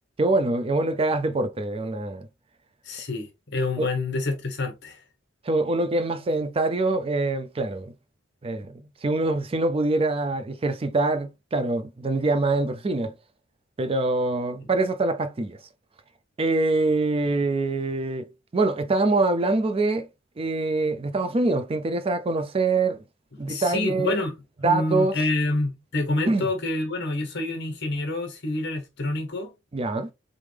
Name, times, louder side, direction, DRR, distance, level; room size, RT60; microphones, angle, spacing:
voice 1, 0.2-2.3 3.8-3.9 5.4-7.9 8.4-8.7 9.0-13.1 13.8-15.6 16.4-20.1 20.4-23.0 23.4-24.2 24.6-25.1 26.2-26.5 29.7-30.1, right 2 dB, 30° right, 0.4 m, -24 dB
voice 2, 2.8-5.0 14.6-14.7 23.4-24.3 24.6-29.5, left 2 dB, 60° left, 1.4 m, -27 dB
3.7 x 3.4 x 3.3 m
head